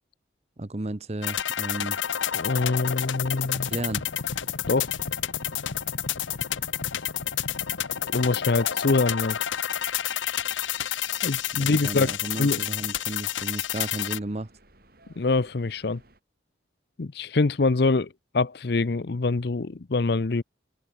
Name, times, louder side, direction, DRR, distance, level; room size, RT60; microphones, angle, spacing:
voice 1, 0.6-2.0 3.5-4.1 11.5-14.5, right 1 dB, 35° right, 0.9 m, -33 dB
sound 1, 1.2-14.2, left 10 dB, 90° left, 0.9 m, -29 dB
sound 2, 1.9-16.2, right 1 dB, 50° right, 5.1 m, -58 dB
voice 2, 2.3-3.7 4.7-4.9 8.1-9.4 11.2-12.1 12.4-12.6 15.2-16.0 17.0-20.4, left 3 dB, 55° left, 0.6 m, -24 dB
head